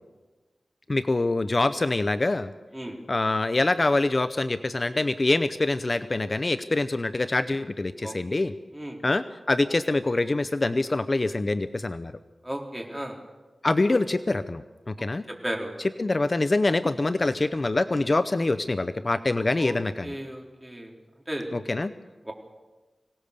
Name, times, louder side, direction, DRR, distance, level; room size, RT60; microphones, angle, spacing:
voice 1, 0.9-2.5 3.1-8.5 9.0-12.1 13.6-15.2 16.0-20.1 21.5-21.9, left 2 dB, 40° left, 11 dB, 0.6 m, -25 dB
voice 2, 8.0-8.5 8.7-9.0 12.4-13.2 15.4-15.7 19.6-20.9 21.3-21.5 22.2-22.3, right 1 dB, 15° right, 0 dB, 3.9 m, -35 dB
24.5 x 18.0 x 6.8 m, 1.2 s
wide cardioid pair, 100°, 0 cm